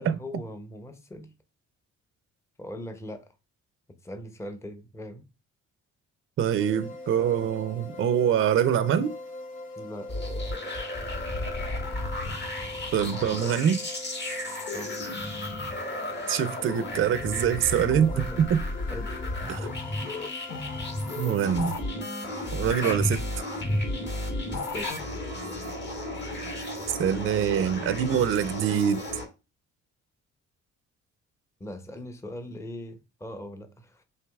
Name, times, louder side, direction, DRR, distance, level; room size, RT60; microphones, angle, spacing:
voice 1, 0.0-1.3 2.6-3.3 4.0-5.2 9.8-10.1 14.6-15.0 17.5-18.5 18.9-19.2 24.7-24.9 31.6-34.0, left 1 dB, 10° left, 0.6 m, -40 dB
voice 2, 6.4-9.1 12.9-13.8 16.3-18.6 19.5-19.7 21.2-21.8 22.5-23.2 26.9-29.0, right 9 dB, 45° right, 0.4 m, -24 dB
sound 1, 6.6-24.9, left 2 dB, 85° left, 1.0 m, -42 dB
sound 2, 10.1-29.3, left 1 dB, 35° left, 1.2 m, -33 dB
4.7 x 2.8 x 2.3 m
cardioid pair, 90°, 30 cm